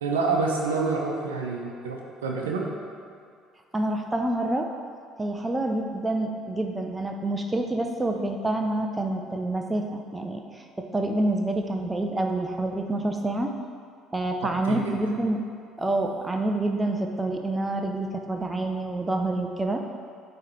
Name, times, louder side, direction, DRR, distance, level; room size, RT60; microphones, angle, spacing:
voice 1, 0.0-2.7 14.6-15.1, right 4 dB, 85° right, 0 dB, 0.7 m, -28 dB
voice 2, 3.7-4.7 5.2-13.5 14.1-15.4 15.8-19.8, right 2 dB, 20° right, 3 dB, 0.7 m, -27 dB
8.7 x 3.2 x 4.5 m, 2.3 s
hypercardioid pair, 55°, 0 cm